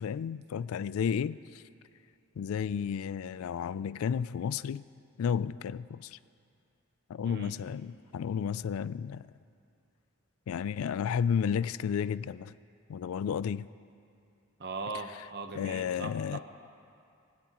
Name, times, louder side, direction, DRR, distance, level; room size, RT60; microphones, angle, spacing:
voice 1, 0.0-1.4 2.4-4.8 5.2-6.2 7.1-9.2 10.5-12.5 12.9-13.7 15.5-16.4, left 7 dB, 80° left, 0.3 m, -32 dB
voice 2, 14.6-16.4, right 3 dB, 50° right, 0.9 m, -39 dB
21.5 x 16.0 x 3.0 m
head